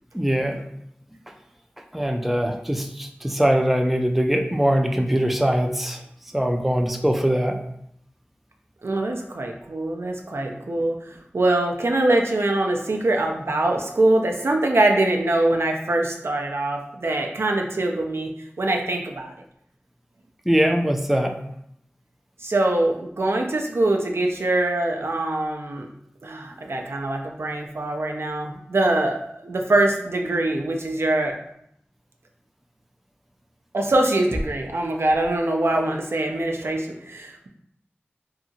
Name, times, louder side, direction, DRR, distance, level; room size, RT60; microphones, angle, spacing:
voice 1, 0.1-0.6 1.9-6.0 6.3-7.6 20.5-21.3, equal, 5° right, 4 dB, 0.3 m, -22 dB
voice 2, 8.8-19.3 22.4-25.9 26.2-31.4 33.7-37.5, right 2 dB, 80° right, 2 dB, 0.4 m, -23 dB
2.7 x 2.4 x 2.6 m, 0.74 s
wide cardioid pair, 50°, 4 cm